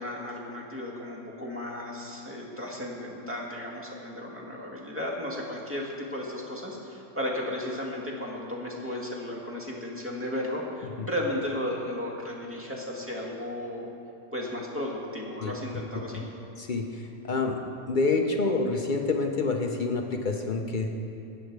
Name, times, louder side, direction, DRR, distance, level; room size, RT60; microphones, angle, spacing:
voice 1, 0.0-13.9 14.3-16.3, left 1 dB, 10° right, -2 dB, 1.7 m, -34 dB
voice 2, 16.6-16.9 17.2-17.6 17.9-20.9, left 3 dB, 55° left, 3 dB, 0.5 m, -27 dB
15.5 x 10.0 x 4.7 m, 2.7 s
omnidirectional pair, 1.8 m